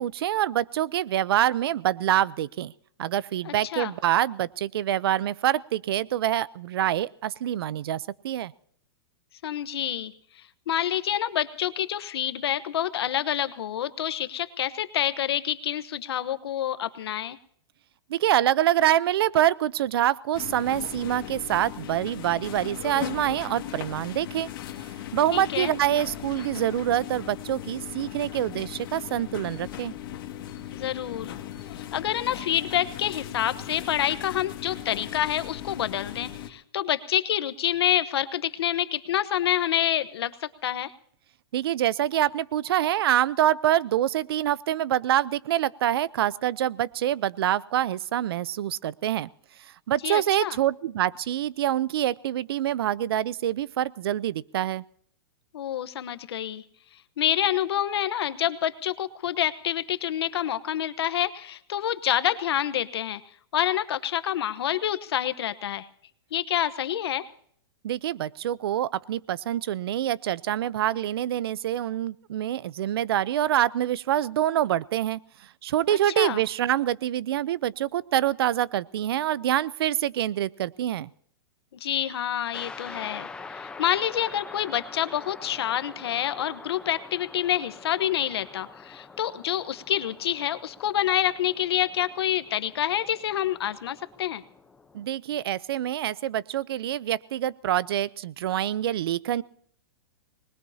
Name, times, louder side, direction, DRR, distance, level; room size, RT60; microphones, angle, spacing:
voice 1, 0.0-2.7 3.0-8.5 18.1-24.5 25.1-29.9 41.5-49.3 49.9-54.8 67.8-75.2 75.6-81.1 94.9-99.4, right 12 dB, 65° right, 21 dB, 0.6 m, -26 dB
voice 2, 3.4-3.9 9.4-17.4 25.3-25.7 30.7-31.3 31.7-40.9 50.0-50.6 55.5-56.6 57.2-63.2 63.5-65.9 66.3-67.3 75.9-76.4 81.8-94.4, left 11 dB, 70° left, 13 dB, 1.1 m, -27 dB
sound 1, 20.3-36.5, left 12 dB, 55° left, 2.0 m, -38 dB
sound 2, 82.5-95.1, left 4 dB, 5° left, 0.8 m, -45 dB
25.0 x 20.5 x 2.8 m, 0.62 s
hypercardioid pair, 160°, 13 cm